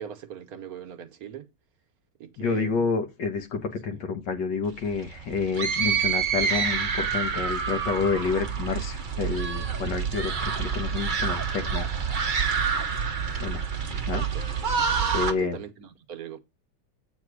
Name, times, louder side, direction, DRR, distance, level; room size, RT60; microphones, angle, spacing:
voice 1, 0.0-1.5 2.2-3.0 3.9-4.0 14.1-14.4 15.3-16.4, right 9 dB, 60° right, 1.2 m, -40 dB
voice 2, 2.4-11.9 13.4-13.6 13.9-14.3 15.1-15.6, left 5 dB, 80° left, 1.9 m, -29 dB
sound 1, 4.7-15.3, right 6 dB, 40° right, 0.7 m, -27 dB
8.3 x 4.0 x 6.1 m
omnidirectional pair, 1.9 m